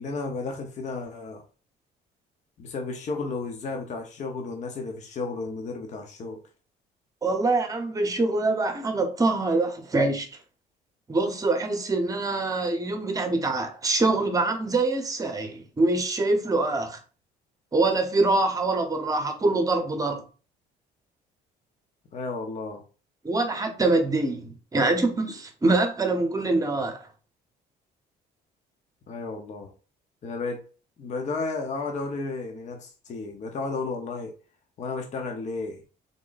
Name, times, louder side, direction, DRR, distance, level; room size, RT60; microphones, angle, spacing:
voice 1, 0.0-1.4 2.6-6.4 22.1-22.8 29.1-29.7 30.2-30.6 31.0-34.3 34.8-35.8, left 3 dB, 45° left, 0.8 m, -33 dB
voice 2, 7.2-10.3 11.1-17.0 17.7-20.2 23.2-27.1, right 2 dB, 20° right, 0.8 m, -24 dB
3.7 x 2.1 x 3.9 m
cardioid pair, 110°, 17 cm